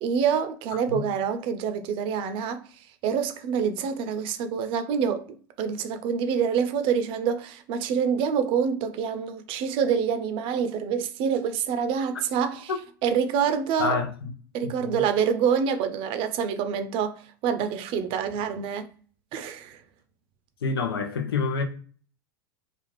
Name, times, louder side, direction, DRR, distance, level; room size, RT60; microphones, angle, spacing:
voice 1, 0.0-2.6 3.0-5.3 5.6-12.7 13.0-14.0 14.5-18.9 19.3-19.8, right 7 dB, 45° right, 0.5 m, -26 dB
voice 2, 13.8-14.3 14.6-15.0 20.6-21.6, left 4 dB, 85° left, 0.6 m, -28 dB
2.4 x 2.4 x 3.1 m
hypercardioid pair, 100°, 12 cm